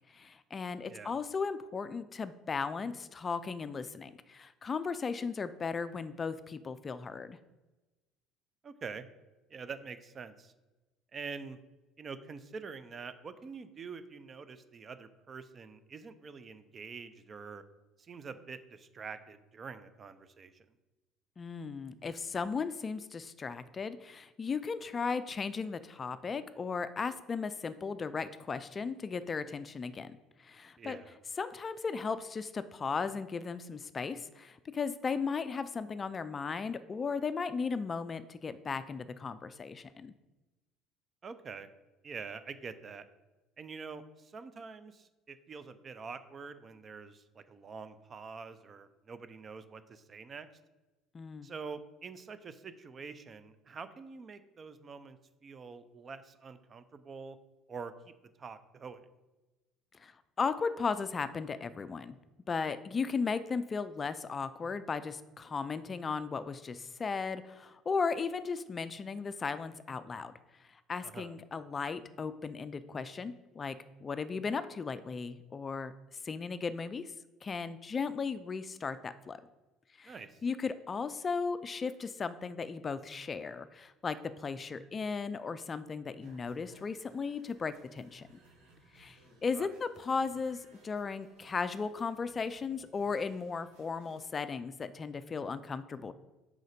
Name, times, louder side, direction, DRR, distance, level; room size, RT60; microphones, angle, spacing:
voice 1, 0.1-7.4 21.4-31.0 31.4-40.1 51.1-51.5 60.0-62.2 62.5-70.3 70.7-75.9 76.2-77.1 77.4-79.4 80.0-80.1 80.4-88.3 88.9-96.1, left 5 dB, 35° left, 13 dB, 0.3 m, -36 dB
voice 2, 0.9-1.2 8.6-9.0 9.5-10.5 11.1-11.6 12.0-17.6 18.0-20.6 30.8-31.2 41.2-41.7 42.0-43.0 43.6-50.5 51.4-57.4 57.7-58.1 58.4-59.0 71.0-71.3 80.0-80.4 89.5-89.7, right 5 dB, 40° right, 12 dB, 0.5 m, -46 dB
sound 1, 86.2-94.2, right 2 dB, 85° right, 2.1 m, -63 dB
5.0 x 3.9 x 5.0 m, 1.1 s
supercardioid pair, 75°, 0 cm